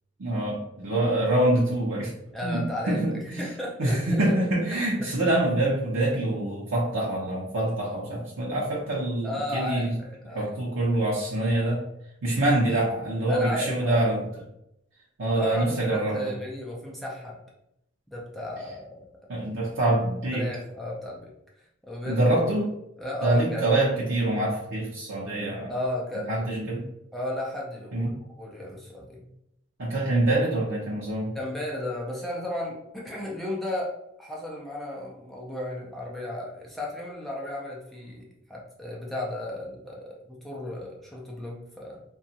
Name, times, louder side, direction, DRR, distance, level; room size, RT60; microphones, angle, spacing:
voice 1, 0.2-2.1 2.4-3.5 3.8-9.9 10.3-11.8 12.2-14.2 15.2-16.3 19.3-20.5 22.1-22.7 23.2-25.7 26.3-26.9 27.9-28.1 29.8-31.3, right 1 dB, 90° right, -5 dB, 0.6 m, -25 dB
voice 2, 2.3-3.1 3.4-4.4 4.7-5.1 9.2-10.6 13.3-14.1 15.3-17.4 18.1-19.1 19.4-19.5 20.3-21.3 21.8-22.4 23.0-23.7 25.7-26.5 27.1-28.1 28.4-29.3 31.3-42.0, left 1 dB, ahead, -4 dB, 0.4 m, -34 dB
2.8 x 2.3 x 2.7 m, 0.80 s
head